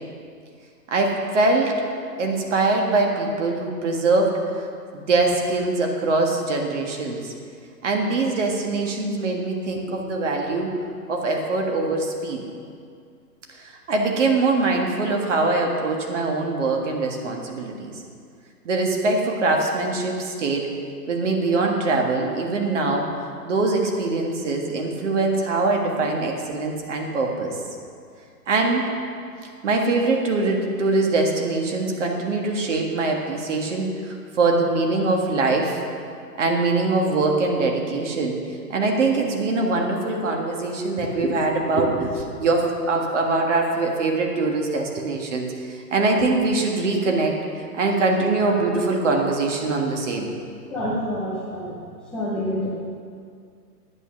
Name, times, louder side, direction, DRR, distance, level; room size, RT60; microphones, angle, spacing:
voice 1, 0.9-1.7 2.2-4.7 4.9-7.3 7.8-10.7 11.1-12.4 13.5-17.9 18.6-20.7 21.1-23.1 23.4-27.6 28.5-28.9 29.6-35.8 36.4-50.3, right 3 dB, 45° right, 1 dB, 1.8 m, -23 dB
voice 2, 50.7-51.7 52.1-52.7, left 1 dB, ahead, -10 dB, 0.6 m, -28 dB
10.5 x 8.8 x 6.0 m, 2.3 s
hypercardioid pair, 145°, 49 cm